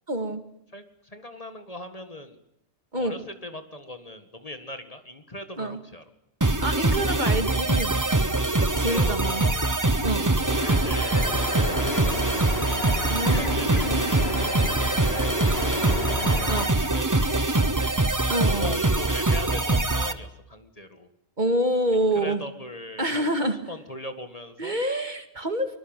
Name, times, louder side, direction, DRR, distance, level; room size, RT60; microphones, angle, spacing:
voice 1, 0.1-0.4 2.9-3.1 5.6-5.8 6.6-8.0 8.6-9.4 10.0-10.4 13.1-14.1 16.5-16.7 18.3-18.8 21.4-22.4 23.0-23.6 24.6-25.7, right 1 dB, 40° right, 8 dB, 2.2 m, -27 dB
voice 2, 0.7-2.4 3.0-6.0 8.7-9.7 10.3-12.5 13.3-14.2 15.0-15.8 16.5-18.0 18.4-21.1 22.1-24.8, left 2 dB, 35° left, 8 dB, 2.0 m, -40 dB
sound 1, 6.4-20.1, right 2 dB, 15° right, 1.1 m, -23 dB
sound 2, 10.5-16.7, left 3 dB, 60° left, 2.5 m, -33 dB
23.5 x 23.5 x 9.1 m, 0.74 s
omnidirectional pair, 1.2 m